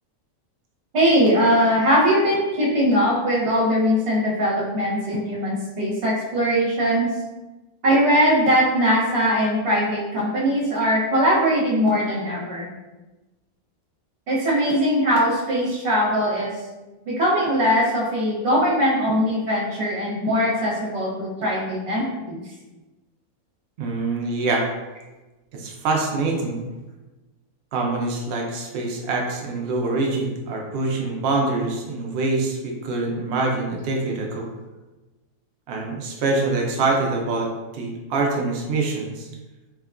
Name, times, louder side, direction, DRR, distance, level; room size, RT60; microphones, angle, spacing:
voice 1, 0.9-7.1 7.8-12.7 14.3-16.5 17.1-22.4, equal, 55° right, -5 dB, 1.1 m, -21 dB
voice 2, 23.8-24.7 25.5-26.6 27.7-34.5 35.7-39.3, right 3 dB, 85° right, 0 dB, 0.5 m, -25 dB
3.4 x 2.2 x 2.4 m, 1.1 s
omnidirectional pair, 1.6 m